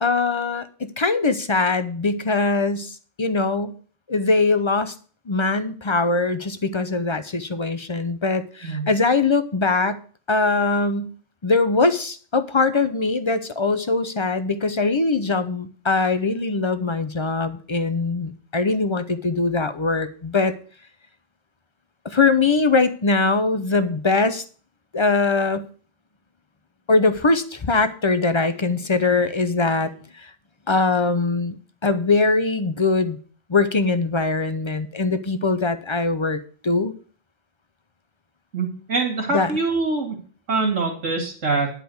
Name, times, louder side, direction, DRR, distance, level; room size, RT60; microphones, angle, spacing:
voice 1, 0.0-3.7 4.1-4.9 5.3-10.0 10.3-11.1 11.4-20.5 22.0-24.4 24.9-25.6 26.9-30.3 30.7-31.6 31.8-33.2 33.5-36.9 39.3-39.5, left 3 dB, 30° left, 11 dB, 0.5 m, -22 dB
voice 2, 38.5-40.2 40.5-41.7, right 3 dB, 75° right, -1 dB, 2.8 m, -24 dB
10.5 x 5.0 x 7.8 m, 0.42 s
omnidirectional pair, 1.3 m